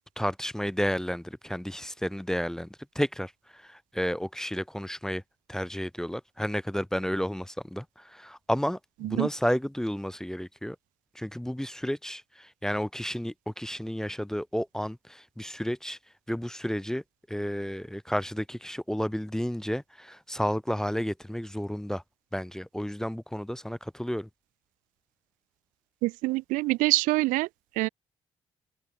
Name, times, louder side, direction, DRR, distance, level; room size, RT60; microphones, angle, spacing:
voice 1, 0.2-5.2 5.5-10.8 11.1-16.0 16.3-17.0 17.3-22.0 22.3-24.3, equal, 5° left, 0.8 m, -32 dB
voice 2, 26.0-27.5 27.8-27.9, right 21 dB, 70° right, 0.7 m, -25 dB
open air
figure-of-eight pair, 40°, 14 cm